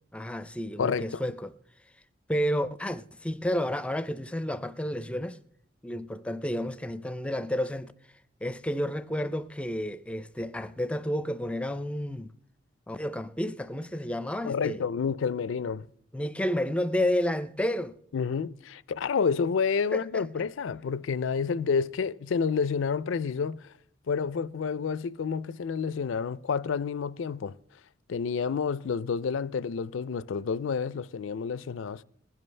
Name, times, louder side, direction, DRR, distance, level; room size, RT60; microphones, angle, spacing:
voice 1, 0.1-1.5 2.3-5.4 5.8-7.9 8.4-12.3 12.9-14.8 16.1-18.0 19.9-20.3, equal, 5° left, 0.4 m, -31 dB
voice 2, 0.8-1.2 14.4-15.9 18.1-23.7 24.1-27.6 28.1-32.0, left 6 dB, 85° left, 0.4 m, -29 dB
20.0 x 10.5 x 3.3 m
head